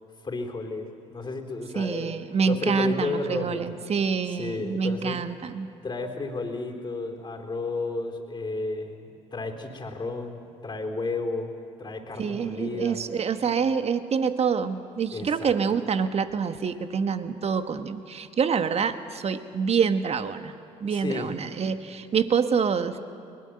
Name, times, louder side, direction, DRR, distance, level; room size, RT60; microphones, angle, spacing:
voice 1, 0.2-2.2 2.4-3.8 4.3-5.2 5.8-11.5 11.8-13.0 15.1-15.8 20.9-21.3, left 3 dB, 30° left, 1 dB, 3.8 m, -32 dB
voice 2, 1.7-5.7 12.2-20.5 20.8-23.0, right 6 dB, 40° right, 10 dB, 1.4 m, -26 dB
22.0 x 21.5 x 7.8 m, 2.5 s
hypercardioid pair, 55°, 16 cm